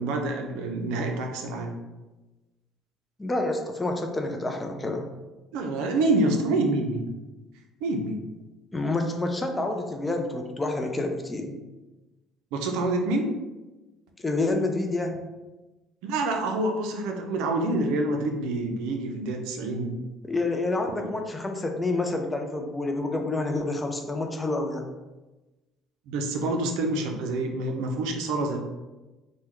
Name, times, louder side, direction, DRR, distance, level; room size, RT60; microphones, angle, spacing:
voice 1, 0.0-1.8 5.5-7.1 7.8-8.2 12.5-13.3 16.0-20.0 20.9-21.0 26.1-28.6, right 2 dB, 80° right, 3 dB, 0.4 m, -27 dB
voice 2, 3.2-5.1 8.7-11.6 14.2-15.2 20.2-24.8, left 2 dB, 15° left, 3 dB, 0.4 m, -28 dB
3.4 x 2.1 x 3.0 m, 1.1 s
supercardioid pair, 95°, 0 cm